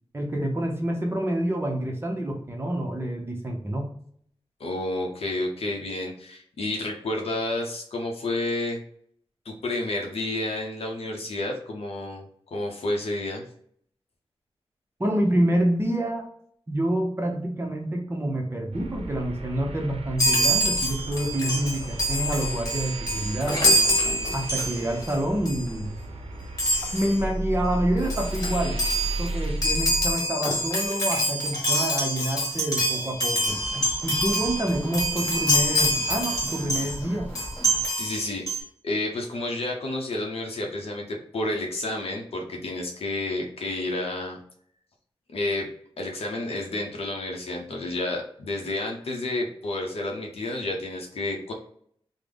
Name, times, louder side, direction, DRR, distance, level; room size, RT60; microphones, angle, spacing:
voice 1, 0.1-3.9 15.0-16.3 16.7-23.7 24.3-25.9 26.9-28.8 29.2-37.3, right 1 dB, 25° right, 1 dB, 0.6 m, -27 dB
voice 2, 4.6-8.8 9.5-12.2 12.5-13.5 34.2-34.3 37.7-38.6 38.8-44.4 45.3-45.7 46.0-51.5, left 2 dB, 75° left, 1 dB, 0.6 m, -30 dB
sound 1, 18.7-30.1, right 1 dB, 75° right, 0.5 m, -34 dB
Chime, 20.2-25.1 25.4-25.7 26.6-27.2 27.7-27.8 28.0-37.0 37.3-38.6, equal, 35° left, 1.2 m, -26 dB
sound 2, 33.5-37.9, equal, 10° left, 0.8 m, -39 dB
3.6 x 2.0 x 3.3 m, 0.64 s
wide cardioid pair, 100°, 10 cm